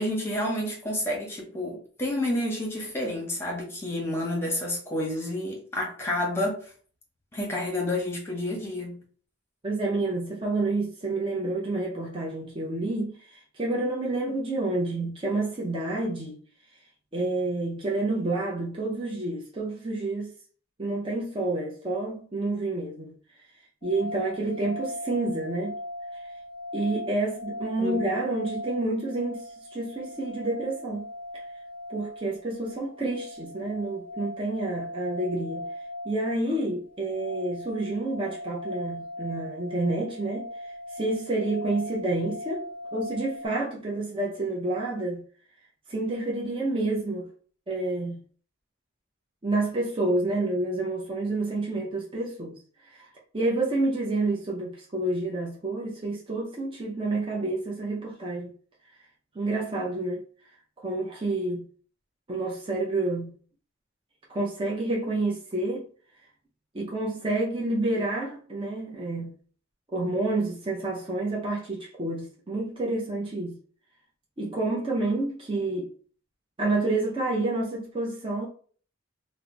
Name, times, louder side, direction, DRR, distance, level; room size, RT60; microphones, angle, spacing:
voice 1, 0.0-6.7 7.3-9.0 27.8-28.2, left 1 dB, 10° left, 1.0 m, -30 dB
voice 2, 9.6-16.4 17.1-20.3 20.8-23.1 23.8-25.7 26.7-31.1 31.9-35.7 36.0-40.5 40.9-42.7 42.9-45.2 45.9-47.3 47.7-48.2 49.4-52.6 52.9-53.1 53.3-58.5 59.3-60.2 60.8-61.7 62.3-63.3 64.3-65.9 66.7-69.3 69.9-73.6 74.4-75.9 76.6-78.5, right 2 dB, 25° right, 0.6 m, -29 dB
sound 1, 23.8-43.5, left 1 dB, 40° left, 0.4 m, -39 dB
2.9 x 2.1 x 3.8 m
head